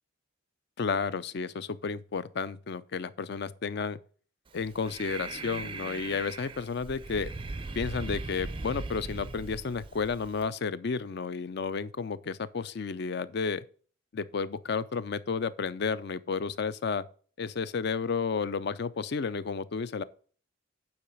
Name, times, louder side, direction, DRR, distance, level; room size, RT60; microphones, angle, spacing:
voice 1, 0.8-4.0 4.5-7.3 7.8-13.6 14.1-17.1 17.4-20.0, left 5 dB, 50° left, 0.4 m, -32 dB
Breathing, 4.5-10.5, right 3 dB, 25° right, 0.4 m, -39 dB
8.8 x 3.9 x 6.8 m
head